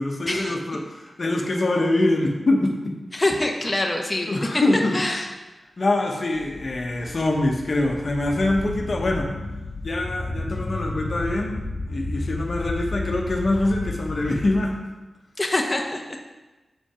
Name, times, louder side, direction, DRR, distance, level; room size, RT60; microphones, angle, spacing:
voice 1, 0.0-3.0 4.3-5.0 5.8-9.3 9.8-14.8, left 2 dB, 55° left, 1 dB, 1.2 m, -24 dB
voice 2, 3.1-4.6 4.9-5.3 15.4-16.2, left 1 dB, 25° left, 1 dB, 1.1 m, -25 dB
sound 1, 6.3-14.6, left 2 dB, 80° left, 0.8 m, -32 dB
7.8 x 5.1 x 5.0 m, 1.1 s
cardioid pair, 45°, 0 cm